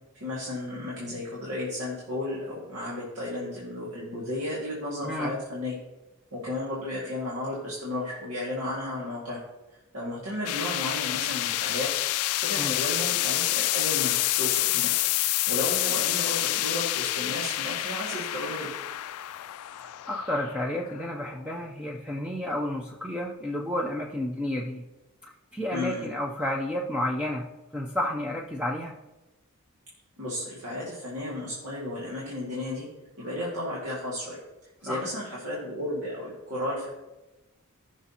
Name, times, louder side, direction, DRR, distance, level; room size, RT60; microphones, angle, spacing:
voice 1, 0.1-5.8 6.3-9.4 9.7-11.9 12.4-14.9 15.2-18.7 25.7-26.1 30.2-32.9 33.2-34.4 34.8-37.0, left 1 dB, 80° right, -6 dB, 2.0 m, -33 dB
voice 2, 5.0-5.3 12.6-12.7 20.1-24.8 25.5-27.5 27.7-28.9 34.9-35.0, left 1 dB, 5° right, -2 dB, 0.6 m, -31 dB
sound 1, 10.5-21.6, left 17 dB, 75° left, 0.3 m, -28 dB
15.0 x 6.0 x 2.9 m, 1.1 s
head